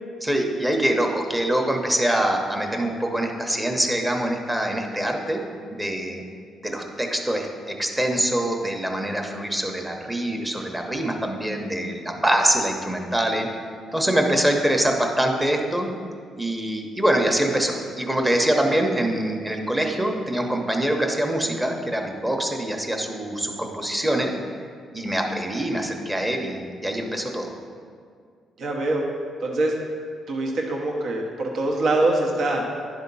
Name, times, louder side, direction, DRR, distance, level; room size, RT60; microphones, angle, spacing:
voice 1, 0.2-5.4 5.7-6.2 6.6-13.5 13.9-15.9 16.4-24.3 24.9-27.5, right 1 dB, 10° right, 2 dB, 1.0 m, -24 dB
voice 2, 28.6-29.0 29.4-29.7 30.3-32.6, right 2 dB, 65° right, 0 dB, 1.1 m, -24 dB
10.5 x 3.6 x 5.4 m, 2.1 s
cardioid pair, 90°, 0 cm